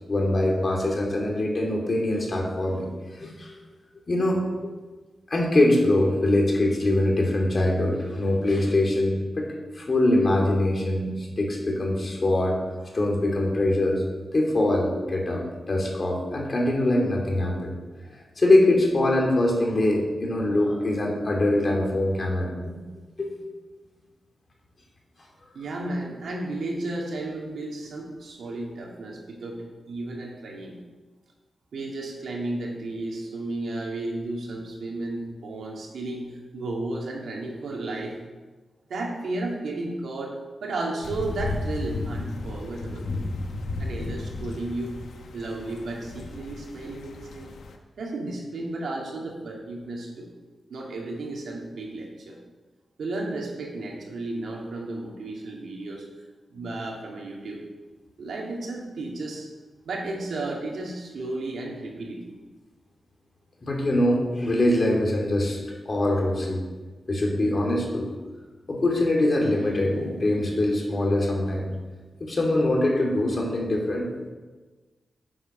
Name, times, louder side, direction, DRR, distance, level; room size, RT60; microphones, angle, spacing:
voice 1, 0.1-2.9 3.2-3.5 4.1-4.7 5.3-9.5 9.7-12.6 12.9-14.0 14.3-17.7 18.4-22.7 23.2-23.5 63.6-65.6 65.8-66.6 67.1-68.1 68.7-71.7 72.2-74.1, left 1 dB, 40° left, 0 dB, 2.7 m, -23 dB
voice 2, 25.5-30.8 31.7-38.2 38.9-40.3 40.6-43.1 43.8-45.0 45.3-47.5 48.0-50.3 50.7-52.4 53.0-56.0 56.5-57.6 58.2-59.5 59.9-62.3, right 2 dB, 80° right, -1 dB, 2.4 m, -33 dB
sound 1, 41.0-47.8, left 2 dB, 85° left, 1.2 m, -34 dB
10.0 x 7.9 x 6.1 m, 1.3 s
wide cardioid pair, 105°, 0 cm